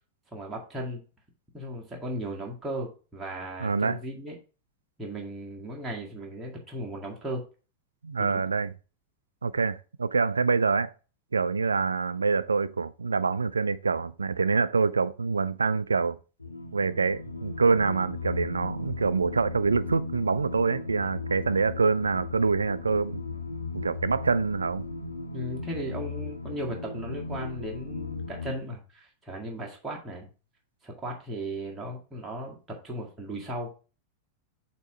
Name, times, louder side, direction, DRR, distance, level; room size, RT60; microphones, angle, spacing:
voice 1, 0.3-1.0 1.5-4.4 5.0-7.5 8.2-8.4 25.3-30.3 30.8-33.7, right 1 dB, 10° right, 1.8 m, -36 dB
voice 2, 3.6-4.0 8.0-8.7 9.4-10.9 11.3-16.2 16.7-23.2 23.7-24.8, right 4 dB, 75° right, 0.4 m, -26 dB
sound 1, 16.4-28.5, left 3 dB, 85° left, 0.7 m, -37 dB
8.0 x 3.0 x 4.6 m
figure-of-eight pair, 90°, 0 cm